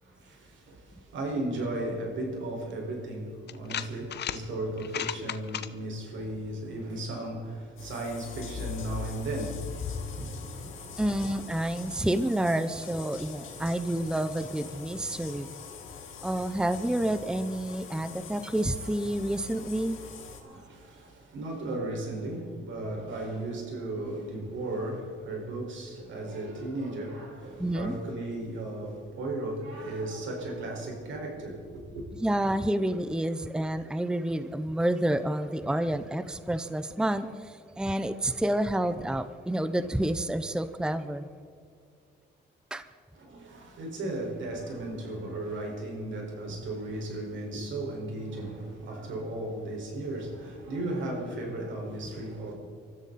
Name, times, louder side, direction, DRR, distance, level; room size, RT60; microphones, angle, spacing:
voice 1, 0.0-9.8 10.1-11.0 20.4-32.0 43.1-52.5, right 1 dB, 75° right, 5.1 m, -35 dB
sound 1, 2.7-2.8 3.5-4.4 4.8-5.7, left 10 dB, 60° left, 0.9 m, -34 dB
sound 2, 7.8-20.4, left 6 dB, 80° left, 3.4 m, -42 dB
voice 2, 11.0-15.5 16.2-20.0 27.6-28.0 32.1-41.3 42.7-42.9, right 1 dB, 5° right, 0.7 m, -29 dB
25.0 x 14.0 x 4.2 m
cardioid pair, 90°, 20 cm